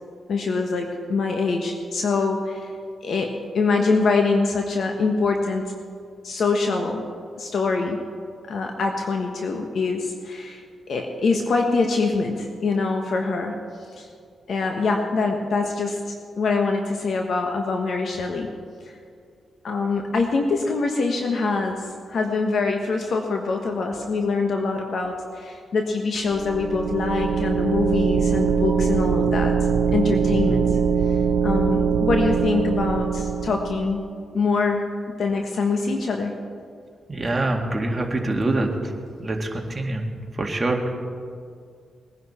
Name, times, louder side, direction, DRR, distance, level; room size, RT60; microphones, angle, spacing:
voice 1, 0.3-2.7 3.0-5.7 6.2-7.0 7.4-8.0 8.5-13.5 14.0-14.1 14.5-18.5 18.9-19.0 19.6-29.5 29.9-30.7 31.1-34.0 34.3-34.9 35.2-36.3, left 4 dB, 65° left, 3 dB, 1.3 m, -24 dB
sound 1, 26.3-34.0, right 6 dB, 70° right, 0.8 m, -22 dB
voice 2, 37.1-38.9 39.2-40.9, right 2 dB, 25° right, 1 dB, 2.0 m, -25 dB
20.5 x 10.5 x 4.4 m, 2.2 s
cardioid pair, 80°, 0 cm